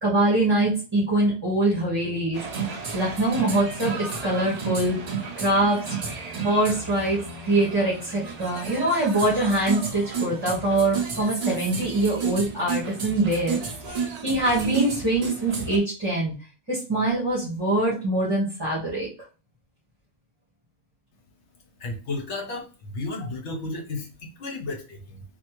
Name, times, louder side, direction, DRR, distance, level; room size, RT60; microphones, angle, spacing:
voice 1, 0.0-2.4 2.9-5.0 5.4-5.8 6.4-13.6 13.9-16.3 16.7-19.1, right 2 dB, 20° right, -7 dB, 1.3 m, -24 dB
sound 1, 2.3-15.8, right 5 dB, 90° right, 0.3 m, -32 dB
voice 2, 21.8-25.2, left 2 dB, 60° left, 3 dB, 0.9 m, -33 dB
3.2 x 2.5 x 3.0 m, 0.34 s
omnidirectional pair, 1.5 m